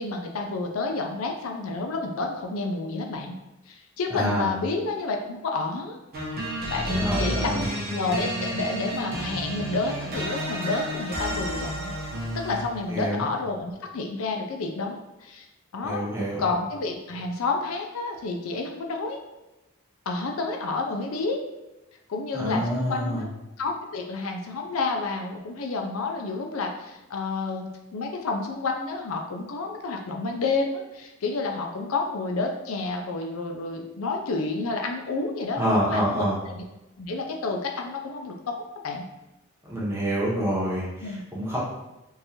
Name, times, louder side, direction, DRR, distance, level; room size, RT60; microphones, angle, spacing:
voice 1, 0.0-3.4 3.7-6.0 6.7-7.6 7.9-11.9 12.3-15.5 15.7-16.0 16.4-19.2 20.1-21.4 22.1-23.3 23.6-36.6 37.0-38.5 38.8-39.0 41.0-41.2, left 3 dB, 80° left, 3 dB, 0.5 m, -30 dB
voice 2, 4.1-4.5 6.9-7.6 12.9-13.2 15.8-16.4 22.3-23.2 35.6-36.3 39.7-40.8 41.3-41.6, equal, 15° right, -6 dB, 1.1 m, -26 dB
sound 1, 6.1-12.8, equal, 50° right, 0.7 m, -31 dB
3.7 x 2.7 x 2.9 m, 0.98 s
head